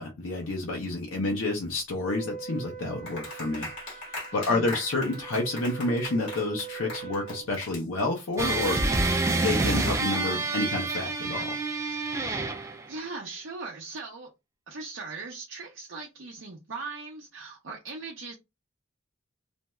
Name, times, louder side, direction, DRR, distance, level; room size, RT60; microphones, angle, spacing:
voice 1, 0.0-3.7 4.3-9.1 9.4-11.6, left 2 dB, 85° left, 0.6 m, -29 dB
Wind instrument woodwind instrument, 2.0-7.5, right 8 dB, 45° left, 0.9 m, -42 dB
Clapping, 3.1-8.4, left 2 dB, 70° left, 1.1 m, -41 dB
voice 2, 4.3-4.8 12.0-12.1 12.5-14.3 14.7-18.3, right 3 dB, 65° right, 0.6 m, -40 dB
sound 1, 8.4-12.9, right 3 dB, 15° right, 0.3 m, -27 dB
2.5 x 2.2 x 3.0 m
head